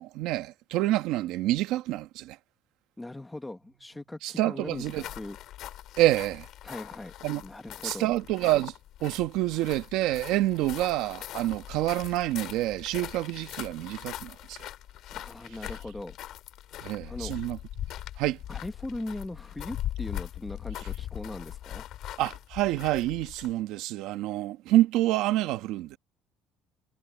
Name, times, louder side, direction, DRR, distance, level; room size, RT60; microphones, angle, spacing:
voice 1, 0.0-2.4 4.2-5.0 6.0-6.5 7.2-7.4 7.8-8.7 9.0-14.7 16.8-17.6 18.2-18.4 22.2-26.0, right 15 dB, 70° right, 1.3 m, -27 dB
voice 2, 3.0-5.4 6.6-7.1 7.4-8.1 15.1-16.2 16.7-17.3 18.5-21.9, left 2 dB, 5° left, 1.3 m, -39 dB
sound 1, 4.7-23.6, left 13 dB, 55° left, 2.3 m, -41 dB
cardioid pair, 165°, 0 cm